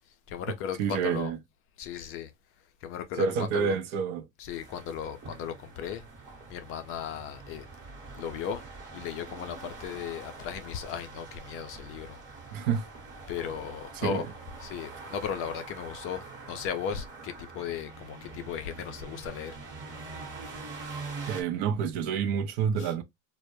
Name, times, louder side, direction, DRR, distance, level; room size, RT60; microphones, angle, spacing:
voice 1, 0.0-1.3 1.8-2.3 2.6-3.8 4.4-6.0 6.5-7.7 8.1-8.6 8.9-12.2 12.5-12.6 13.3-14.3 14.6-19.6 22.8-22.9, left 8 dB, 35° left, 0.4 m, -36 dB
voice 2, 0.8-1.4 3.2-4.3 12.5-12.9 14.0-14.2 21.3-23.0, right 6 dB, 60° right, 0.6 m, -28 dB
sound 1, 4.5-21.4, right 3 dB, 30° right, 1.0 m, -44 dB
2.1 x 2.0 x 2.9 m
hypercardioid pair, 110°, 38 cm